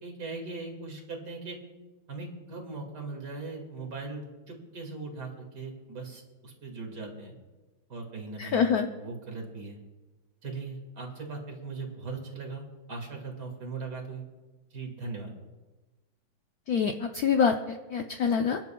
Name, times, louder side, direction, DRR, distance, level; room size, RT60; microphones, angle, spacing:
voice 1, 0.0-1.6 2.1-7.4 7.9-9.8 10.4-14.2 14.7-15.4, right 3 dB, 55° right, 1 dB, 2.7 m, -39 dB
voice 2, 8.4-8.9 16.7-18.6, left 6 dB, 70° left, 5 dB, 0.9 m, -26 dB
28.5 x 10.5 x 2.3 m, 1.2 s
omnidirectional pair, 2.2 m